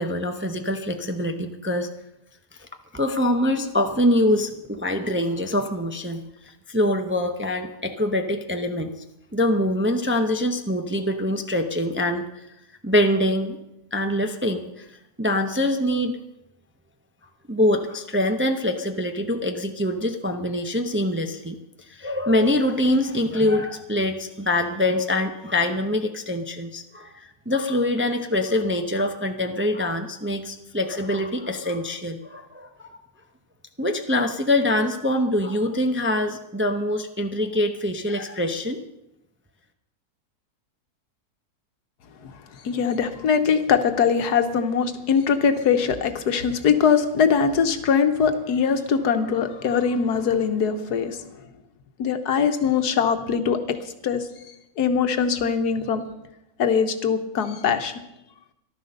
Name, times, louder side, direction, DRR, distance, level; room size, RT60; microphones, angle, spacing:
voice 1, 0.0-1.9 2.6-2.7 2.9-6.2 6.7-8.9 9.3-12.3 12.8-13.6 13.9-14.9 15.2-16.2 17.5-21.6 21.9-33.0 33.8-38.8, left 1 dB, 10° right, 5 dB, 0.6 m, -24 dB
voice 2, 42.2-51.3 52.0-53.8 54.0-54.3 54.8-56.0 56.6-58.0, left 6 dB, 90° left, 8 dB, 1.6 m, -22 dB
14.0 x 12.0 x 6.6 m, 0.89 s
omnidirectional pair, 1.7 m